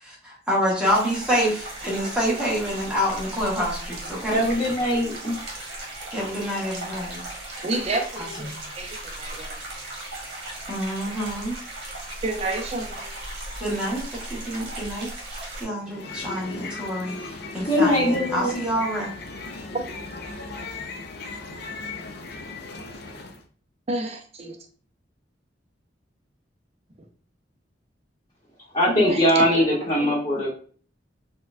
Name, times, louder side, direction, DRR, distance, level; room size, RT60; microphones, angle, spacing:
voice 1, 0.0-4.4 6.1-7.2 8.4-8.5 10.7-11.6 13.6-19.1, equal, 5° right, -5 dB, 1.1 m, -27 dB
sound 1, 0.8-15.6, right 1 dB, 60° right, 1.2 m, -37 dB
voice 2, 4.3-5.4 17.6-18.6 28.7-30.5, equal, 25° left, -8 dB, 0.9 m, -21 dB
voice 3, 7.6-8.5 8.7-9.6 12.2-13.1 23.9-24.6 28.9-29.2 29.5-29.7 30.0-30.1, right 2 dB, 35° right, 4 dB, 0.5 m, -30 dB
sound 2, 15.8-23.4, left 3 dB, 60° left, 0.4 m, -37 dB
4.3 x 2.2 x 2.5 m, 0.43 s
head